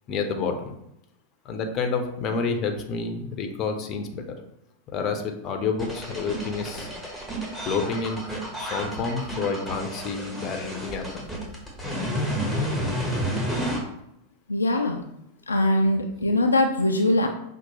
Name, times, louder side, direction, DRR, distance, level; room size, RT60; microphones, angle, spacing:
voice 1, 0.1-0.7 1.4-4.3 4.9-6.9 7.7-8.2 8.6-11.0, left 5 dB, 35° left, 5 dB, 0.7 m, -29 dB
sound 1, 5.8-13.8, equal, 5° right, 1.3 m, -30 dB
voice 2, 14.5-15.1 15.5-17.3, left 1 dB, 75° left, 3 dB, 0.4 m, -22 dB
5.8 x 2.5 x 2.9 m, 0.80 s
figure-of-eight pair, 90°, 0 cm